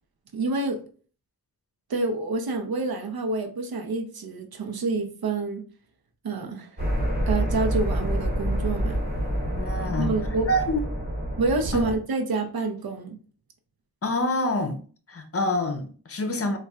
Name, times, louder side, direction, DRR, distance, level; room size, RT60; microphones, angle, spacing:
voice 1, 0.3-0.8 1.9-5.6 6.2-6.7 7.3-9.0 9.8-10.5 11.4-13.2, right 3 dB, 75° right, 0.7 m, -28 dB
sound 1, 6.8-12.0, equal, 25° right, 1.5 m, -27 dB
voice 2, 9.5-10.2 10.5-10.8 11.7-11.8 14.0-14.8 15.1-16.6, left 1 dB, 40° left, 0.7 m, -26 dB
4.1 x 2.3 x 2.3 m
cardioid pair, 55°, 36 cm